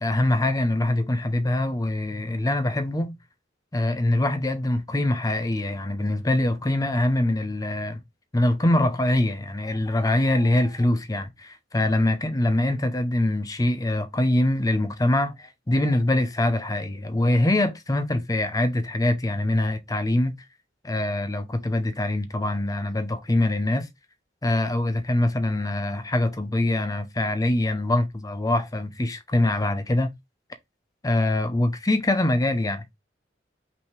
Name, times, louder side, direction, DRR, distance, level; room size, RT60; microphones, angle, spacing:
voice 1, 0.0-3.1 3.7-8.0 8.3-20.4 20.8-23.9 24.4-30.1 31.0-32.8, left 1 dB, 20° left, 0.6 m, -24 dB
5.6 x 2.8 x 3.1 m
head